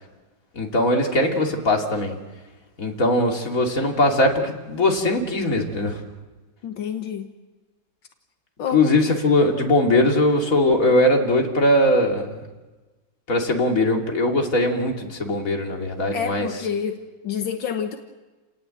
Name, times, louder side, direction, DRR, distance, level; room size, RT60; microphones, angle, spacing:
voice 1, 0.6-2.2 2.8-5.9 8.7-12.4 13.3-16.5, left 1 dB, 45° left, 1 dB, 3.1 m, -20 dB
voice 2, 6.6-7.3 8.6-8.9 16.1-18.0, left 7 dB, 80° left, 5 dB, 2.0 m, -28 dB
30.0 x 19.0 x 7.8 m, 1.2 s
omnidirectional pair, 2.0 m